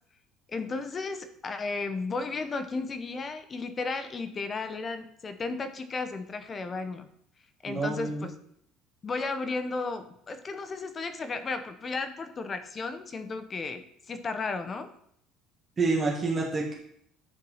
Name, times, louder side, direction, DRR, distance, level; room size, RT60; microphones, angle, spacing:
voice 1, 0.5-7.1 7.6-8.3 9.0-14.9, left 3 dB, 25° left, 9 dB, 0.8 m, -34 dB
voice 2, 7.7-8.3 15.8-16.7, right 3 dB, 25° right, -2 dB, 1.5 m, -28 dB
9.9 x 4.6 x 5.6 m, 0.70 s
cardioid pair, 145°, 0 cm